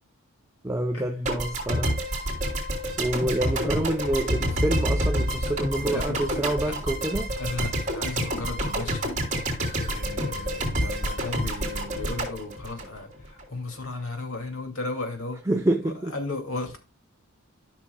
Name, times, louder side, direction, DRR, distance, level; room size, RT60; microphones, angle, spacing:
voice 1, 0.6-1.9 3.0-7.3 15.5-16.1, right 1 dB, 15° right, 0.6 m, -27 dB
sound 1, 1.2-13.4, equal, 35° right, 3.1 m, -28 dB
voice 2, 3.4-3.7 5.9-6.2 6.6-6.7 7.4-9.3 9.8-15.5 15.8-16.8, left 2 dB, 75° left, 2.4 m, -35 dB
13.0 x 6.1 x 2.3 m
head